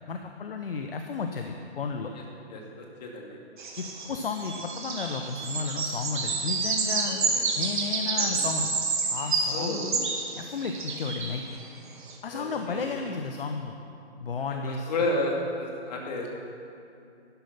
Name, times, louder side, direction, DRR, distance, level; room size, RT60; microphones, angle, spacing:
voice 1, 0.0-2.1 3.8-7.2 7.6-8.7 9.1-10.1 10.4-11.4 12.2-13.8 14.2-14.9, left 5 dB, 55° left, 5 dB, 0.9 m, -33 dB
voice 2, 2.5-3.4 7.0-7.4 8.1-8.4 9.5-9.8 12.3-12.9 14.4-14.5 14.9-16.3, left 2 dB, 35° left, -1 dB, 2.4 m, -32 dB
sound 1, 3.6-11.4 12.1-12.2, right 4 dB, 45° right, 1.9 m, -29 dB
11.5 x 11.5 x 5.8 m, 2.6 s
figure-of-eight pair, 135°, 34 cm